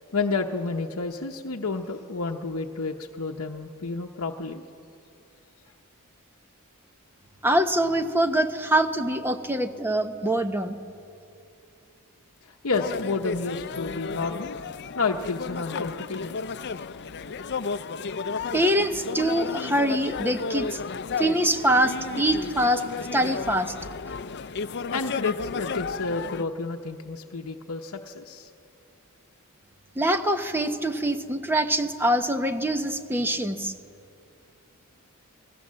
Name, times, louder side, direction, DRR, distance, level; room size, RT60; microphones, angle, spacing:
voice 1, 0.1-4.6 12.4-14.6 14.9-16.4 24.9-28.5, left 4 dB, 70° left, 3 dB, 0.9 m, -30 dB
voice 2, 7.4-10.7 18.5-20.8 21.2-22.8 23.1-23.7 30.0-33.7, right 1 dB, 10° right, 7 dB, 1.0 m, -24 dB
sound 1, 12.7-26.4, left 5 dB, 50° left, 0.6 m, -33 dB
28.5 x 20.0 x 7.5 m, 2.6 s
head